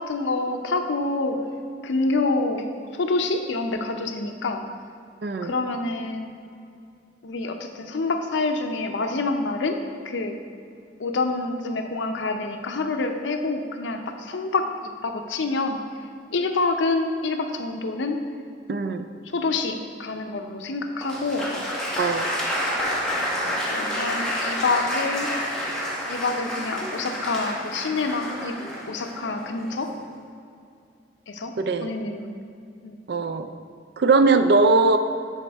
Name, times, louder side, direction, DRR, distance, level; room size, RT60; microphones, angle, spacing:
voice 1, 0.0-1.4 1.8-4.6 5.4-6.4 7.2-9.8 10.0-10.4 11.0-14.7 15.0-15.8 16.3-18.2 19.3-21.5 23.7-25.3 26.1-28.5 28.9-29.9 31.3-31.5 31.8-32.3 32.8-33.0, left 3 dB, 85° left, 5 dB, 0.6 m, -27 dB
voice 2, 5.2-5.5 18.7-19.1 22.0-22.3 31.6-31.9 33.1-33.5 34.0-35.0, right 3 dB, 60° right, 9 dB, 0.4 m, -20 dB
Applause, 21.0-29.9, equal, 5° left, 1.1 m, -29 dB
10.5 x 4.3 x 3.4 m, 2.5 s
head